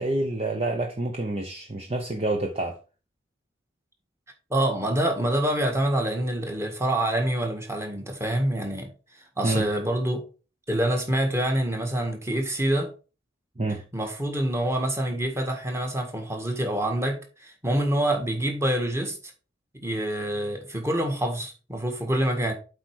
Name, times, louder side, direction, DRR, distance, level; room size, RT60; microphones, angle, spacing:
voice 1, 0.0-2.8 9.4-9.7 13.6-13.8, right 2 dB, 30° right, 0.8 m, -28 dB
voice 2, 4.5-8.9 9.4-10.2 10.7-12.9 13.9-19.2 19.7-22.5, right 1 dB, 15° right, 1.7 m, -26 dB
7.9 x 4.8 x 4.7 m
head